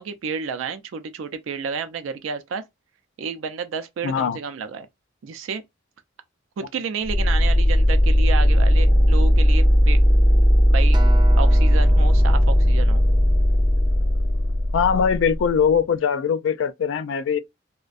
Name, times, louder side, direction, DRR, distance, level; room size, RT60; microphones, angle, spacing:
voice 1, 0.0-2.6 3.2-4.9 5.2-5.6 6.6-10.0 10.7-11.0 11.4-13.0, right 5 dB, 90° right, 0.4 m, -31 dB
voice 2, 4.0-4.4 14.7-17.4, left 7 dB, 75° left, 0.3 m, -21 dB
sound 1, 7.1-15.8, equal, 40° left, 0.7 m, -17 dB
Acoustic guitar, 10.9-15.3 16.0-16.1, right 4 dB, 25° right, 0.4 m, -40 dB
2.5 x 2.1 x 2.3 m
head